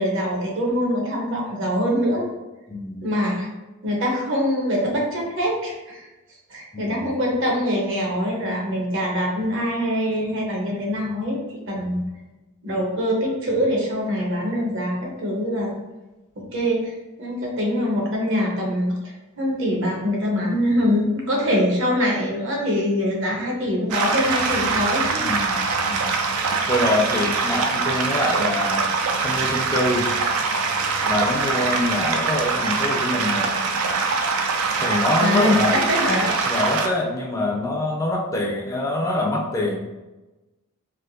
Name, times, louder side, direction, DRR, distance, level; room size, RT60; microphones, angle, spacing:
voice 1, 0.0-2.3 3.0-3.5 3.8-6.1 6.5-12.0 12.6-15.7 16.4-25.3 25.7-25.8 35.2-35.5 35.9-36.3, equal, 60° right, -1 dB, 0.9 m, -24 dB
voice 2, 2.7-3.0 6.7-7.0 11.7-12.1 25.2-26.2 26.7-28.9 29.2-30.1 31.0-33.6 34.8-36.0 36.5-39.9, left 1 dB, 15° left, -2 dB, 0.4 m, -25 dB
sound 1, 23.9-36.9, right 4 dB, 85° right, 0.4 m, -23 dB
3.4 x 2.6 x 2.6 m, 1.1 s
head